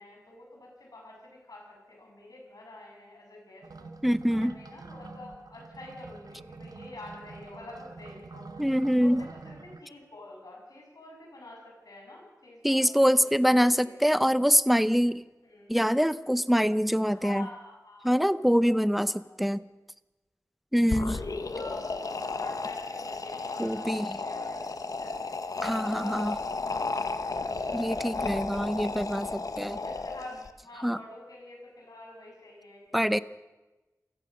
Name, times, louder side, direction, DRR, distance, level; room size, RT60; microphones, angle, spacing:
voice 1, 0.0-3.9 4.3-8.7 9.0-13.2 13.6-14.0 15.4-15.7 17.1-18.1 18.6-19.5 21.4-25.4 26.1-27.6 29.6-33.2, left 2 dB, 85° left, -1 dB, 7.4 m, -48 dB
sound 1, 3.6-9.8, right 3 dB, 90° right, 1.2 m, -46 dB
voice 2, 4.0-4.5 8.6-9.2 12.6-15.2 15.7-17.5 18.0-19.6 20.7-21.2 23.6-24.1 25.6-26.4 27.7-29.8 30.8-31.0 32.9-33.2, equal, ahead, 15 dB, 0.8 m, -24 dB
sound 2, 20.8-30.5, left 3 dB, 70° left, 1.2 m, -33 dB
27.5 x 16.5 x 6.7 m, 1.1 s
wide cardioid pair, 75°, 6 cm